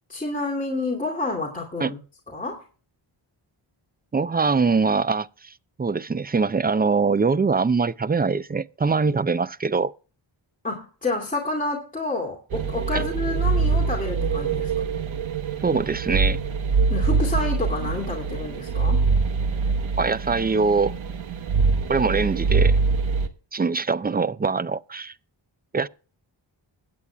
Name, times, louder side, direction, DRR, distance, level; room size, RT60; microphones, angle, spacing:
voice 1, 0.1-2.0 2.3-2.6 10.6-14.7 16.9-19.1, left 2 dB, 15° left, 2.5 m, -29 dB
voice 2, 4.1-5.5 5.8-9.9 12.9-13.0 15.6-16.4 20.0-21.0 21.9-22.8 23.5-25.1 25.7-25.9, right 4 dB, 20° right, 0.4 m, -23 dB
sound 1, 12.5-23.3, right 4 dB, 70° right, 1.3 m, -24 dB
22.5 x 8.6 x 2.3 m
wide cardioid pair, 80°, 48 cm